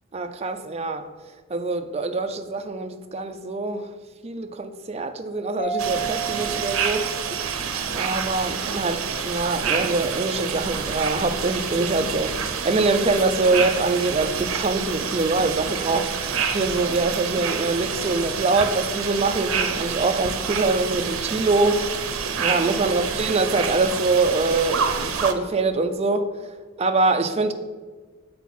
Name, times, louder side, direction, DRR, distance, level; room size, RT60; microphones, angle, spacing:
voice 1, 0.1-1.0 1.5-3.9 4.2-7.1 7.9-16.1 16.5-21.8 22.4-26.3 26.8-27.5, right 3 dB, 30° right, 8 dB, 0.4 m, -24 dB
Mallet percussion, 5.6-8.1, right 5 dB, 40° left, 0.5 m, -32 dB
sound 1, 5.8-25.3, right 6 dB, 85° right, 0.6 m, -28 dB
7.9 x 4.3 x 4.2 m, 1.4 s
head